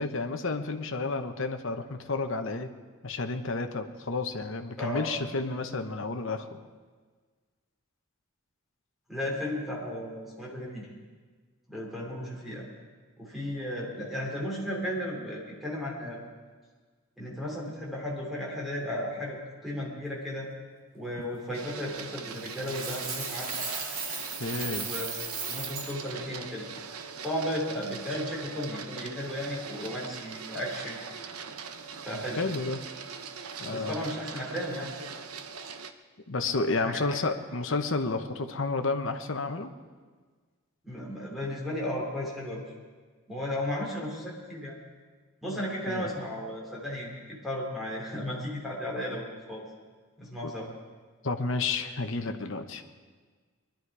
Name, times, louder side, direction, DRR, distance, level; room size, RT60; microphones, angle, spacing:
voice 1, 0.0-2.7 3.0-6.6 24.4-24.9 32.1-32.8 33.6-34.1 36.3-39.7 45.5-45.6 45.9-46.1 51.2-52.8, left 3 dB, 60° left, 7 dB, 1.0 m, -31 dB
voice 2, 4.8-5.1 9.1-10.9 11.7-12.6 13.2-16.2 17.2-20.5 20.9-23.6 24.8-25.1 25.5-26.7 27.2-31.0 32.0-32.4 33.7-34.9 36.8-37.2 40.8-42.6 43.3-44.7 45.4-49.6 50.2-50.7, left 1 dB, ahead, -4 dB, 3.0 m, -34 dB
Printer, 21.5-35.9, right 6 dB, 80° right, 0.8 m, -41 dB
Coin (dropping), 22.4-25.9, right 4 dB, 65° right, 2.9 m, -36 dB
21.0 x 12.0 x 4.8 m, 1.5 s
head